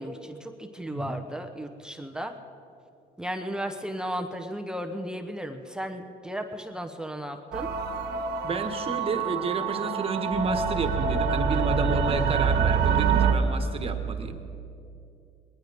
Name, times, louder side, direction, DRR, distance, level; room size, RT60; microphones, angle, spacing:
voice 1, 0.0-2.3 3.2-7.7, equal, 5° right, 4 dB, 0.9 m, -35 dB
voice 2, 0.9-1.2 8.4-14.4, right 3 dB, 35° right, 6 dB, 1.5 m, -30 dB
sound 1, 7.5-13.3, right 6 dB, 75° right, 1.6 m, -26 dB
20.5 x 19.0 x 3.6 m, 2.6 s
cardioid pair, 110°, 17 cm